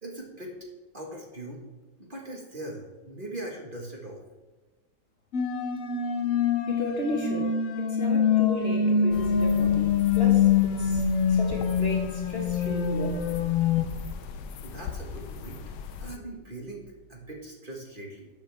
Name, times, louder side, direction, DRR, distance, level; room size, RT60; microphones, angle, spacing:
voice 1, 0.0-0.5 0.9-1.6 2.0-4.2 14.6-15.6 16.0-18.3, right 1 dB, 30° right, -1 dB, 1.5 m, -40 dB
sound 1, 5.3-13.8, left 7 dB, 60° left, 1.1 m, -24 dB
voice 2, 6.7-10.5 10.8-11.0 11.3-13.2, left 1 dB, 40° left, 0 dB, 1.5 m, -34 dB
sound 2, 9.1-16.2, left 6 dB, 80° left, 1.3 m, -39 dB
12.5 x 6.9 x 3.4 m, 1.2 s
omnidirectional pair, 1.8 m